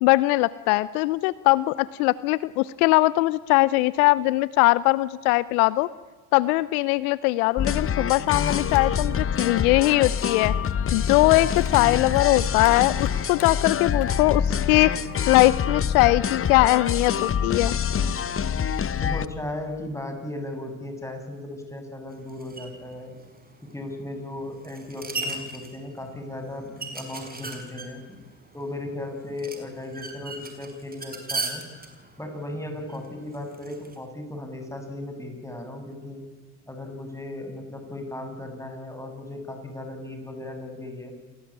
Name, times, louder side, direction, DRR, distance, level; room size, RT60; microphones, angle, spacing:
voice 1, 0.0-5.9 6.3-10.5 10.9-14.9 15.3-17.7, left 20 dB, 70° left, 19 dB, 0.8 m, -21 dB
sound 1, 7.6-19.3, left 7 dB, 30° left, 1.3 m, -26 dB
sound 2, 8.0-8.9 9.4-15.4 15.8-15.9 16.9-18.4, left 5 dB, 85° left, 5.0 m, -47 dB
voice 2, 19.0-23.2 23.7-28.2 28.5-31.6 32.2-36.2 36.6-41.1, left 1 dB, 5° left, 5 dB, 7.9 m, -36 dB
sound 3, 22.1-34.0, right 3 dB, 20° right, 5.5 m, -38 dB
29.0 x 19.0 x 8.9 m, 1.6 s
hypercardioid pair, 70°, 45 cm